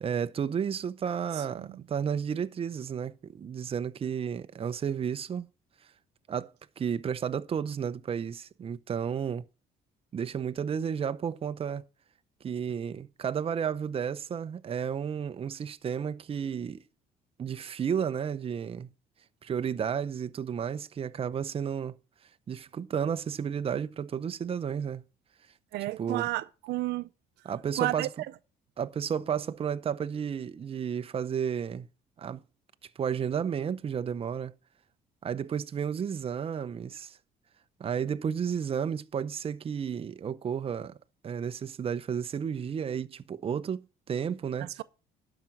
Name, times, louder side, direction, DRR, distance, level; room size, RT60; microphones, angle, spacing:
voice 1, 0.0-5.5 6.3-9.4 10.1-11.8 12.4-16.8 17.4-18.9 19.4-22.0 22.5-25.0 26.0-26.3 27.4-28.1 28.8-31.9 32.2-32.4 33.0-34.5 35.2-37.2 37.8-41.0 41.2-44.7, right 7 dB, 35° right, 0.7 m, -32 dB
voice 2, 1.3-1.8 25.7-27.1 27.8-28.1 44.6-44.8, right 17 dB, 80° right, 0.6 m, -32 dB
12.0 x 5.9 x 6.0 m
cardioid pair, 110°, 17 cm